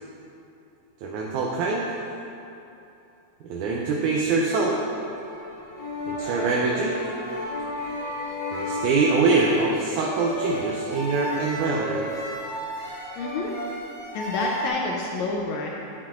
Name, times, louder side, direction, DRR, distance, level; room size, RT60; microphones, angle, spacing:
voice 1, 1.0-1.8 3.5-4.8 6.1-7.0 8.5-12.1, right 3 dB, 75° right, -2 dB, 2.0 m, -24 dB
sound 1, 4.2-14.7, left 1 dB, 20° left, 0.9 m, -33 dB
voice 2, 13.1-13.5 14.1-15.7, left 3 dB, 80° left, -1 dB, 1.6 m, -28 dB
10.0 x 9.2 x 2.5 m, 2.8 s
omnidirectional pair, 3.8 m